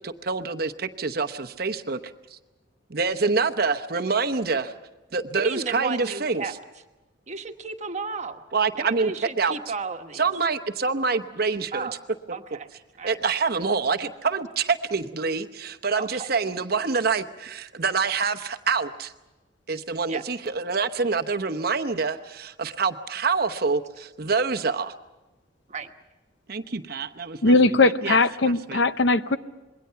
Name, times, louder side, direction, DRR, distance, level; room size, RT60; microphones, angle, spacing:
voice 1, 0.0-2.0 2.3-2.4 2.9-4.7 5.1-6.4 8.5-9.6 10.2-11.9 13.0-19.1 19.7-24.9 26.5-28.2 28.5-28.8, right 4 dB, 50° right, 7 dB, 0.9 m, -26 dB
voice 2, 5.4-6.5 7.3-8.4 8.8-10.2 11.7-11.9 12.3-12.7 13.0-13.1 15.9-16.3 20.1-20.2 25.7-25.9, right 4 dB, 35° right, 6 dB, 1.3 m, -33 dB
voice 3, 27.4-29.4, left 3 dB, 65° left, 12 dB, 0.7 m, -19 dB
26.5 x 22.0 x 5.8 m, 1.1 s
head